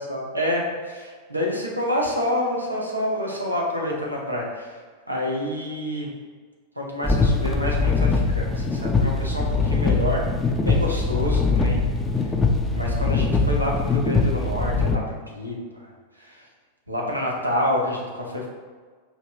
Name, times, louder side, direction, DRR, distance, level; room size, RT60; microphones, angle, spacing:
voice 1, 0.0-4.8 5.1-6.1 6.8-10.2 10.6-11.8 12.2-12.3 12.7-15.0 15.3-16.5 16.9-18.5, left 1 dB, 85° right, -2 dB, 0.6 m, -28 dB
sound 1, 7.0-15.0, left 3 dB, 15° left, 0.4 m, -22 dB
4.5 x 2.8 x 2.3 m, 1.5 s
figure-of-eight pair, 90°, 0 cm